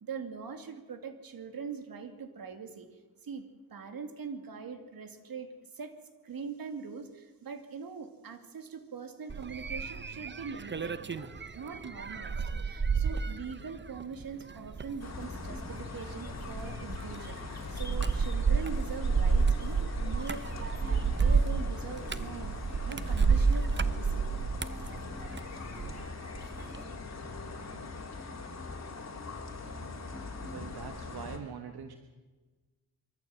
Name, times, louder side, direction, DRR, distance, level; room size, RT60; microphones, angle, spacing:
voice 1, 0.0-5.9 6.2-24.2, right 5 dB, 70° right, 6 dB, 2.5 m, -42 dB
sound 1, 9.3-26.0 26.3-26.8, right 5 dB, 30° right, 0.9 m, -30 dB
sound 2, 14.9-30.8, left 1 dB, 5° left, 4.1 m, -49 dB
sound 3, 15.0-31.4, left 4 dB, 45° left, 3.2 m, -42 dB
voice 2, 30.4-31.9, right 7 dB, 85° right, 6 dB, 1.4 m, -43 dB
23.5 x 14.0 x 7.8 m, 1.3 s
cardioid pair, 85°, 37 cm